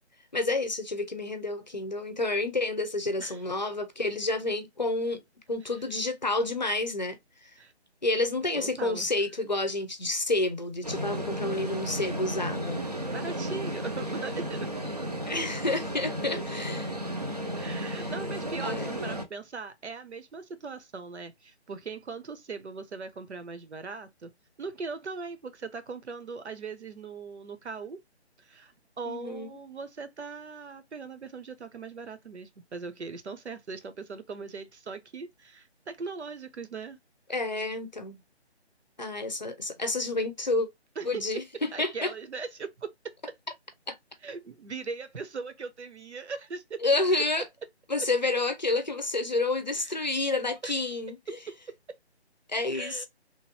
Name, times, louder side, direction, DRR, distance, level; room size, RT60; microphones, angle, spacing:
voice 1, 0.3-5.2 5.5-7.5 8.0-12.8 15.3-16.9 18.0-18.1 18.6-18.9 29.1-29.5 37.3-38.2 39.0-40.7 41.1-42.1 43.9-44.0 46.8-47.5 47.9-51.2 52.5-53.1, left 2 dB, 40° left, 0.6 m, -29 dB
voice 2, 8.5-9.1 13.1-14.7 17.6-24.3 24.6-28.0 28.4-37.0 41.0-41.4 41.7-43.3 44.2-47.0 49.8-50.1 50.6-50.9 52.7-53.1, right 4 dB, 75° right, 1.0 m, -39 dB
sound 1, 10.8-19.2, equal, 35° right, 0.5 m, -34 dB
3.2 x 2.6 x 2.6 m
hypercardioid pair, 180°, 34 cm